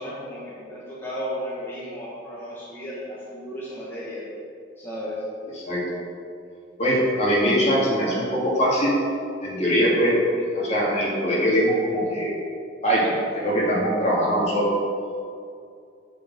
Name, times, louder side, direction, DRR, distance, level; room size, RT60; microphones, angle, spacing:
voice 1, 0.0-4.3 4.8-5.2, equal, 10° left, -8 dB, 1.4 m, -34 dB
voice 2, 6.8-9.0 9.4-12.3 12.8-14.7, equal, 35° left, -5 dB, 2.3 m, -22 dB
8.3 x 4.5 x 7.2 m, 2.4 s
head